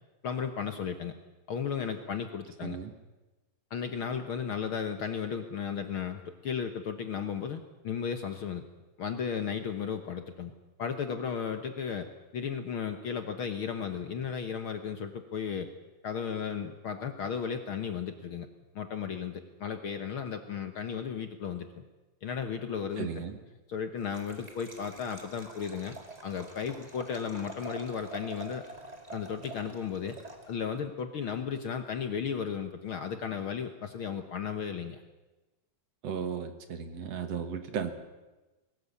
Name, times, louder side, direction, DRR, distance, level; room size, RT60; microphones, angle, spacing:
voice 1, 0.2-1.1 1.5-2.8 3.7-8.6 9.0-10.5 10.8-15.7 16.0-18.5 18.7-21.8 22.2-23.2 23.7-25.9 26.2-28.7 29.1-30.2 30.5-35.0, left 7 dB, 55° left, 7 dB, 1.6 m, -35 dB
voice 2, 2.6-2.9 23.0-23.4 36.0-37.9, right 7 dB, 60° right, 8 dB, 2.4 m, -35 dB
Liquid, 24.0-30.8, right 3 dB, 15° right, 1.9 m, -47 dB
22.0 x 18.5 x 8.4 m, 1.1 s
omnidirectional pair, 3.4 m